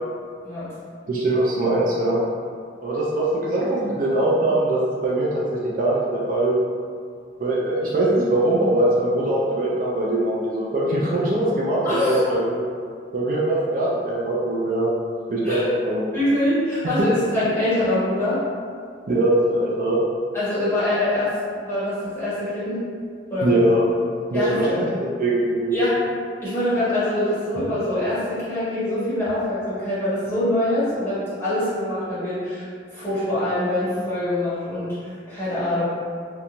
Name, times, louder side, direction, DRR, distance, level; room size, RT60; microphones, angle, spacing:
voice 1, 1.1-2.2 2.8-6.5 7.4-12.7 13.1-14.9 15.3-16.0 19.1-20.0 23.4-23.8 24.3-25.8, right 1 dB, 45° right, -5 dB, 0.3 m, -22 dB
voice 2, 11.8-12.2 15.4-15.7 16.1-18.4 20.3-22.8 23.3-23.6 24.3-24.7 25.7-26.0 26.4-35.8, left 1 dB, 10° left, -14 dB, 1.1 m, -24 dB
2.5 x 2.2 x 2.9 m, 2.2 s
head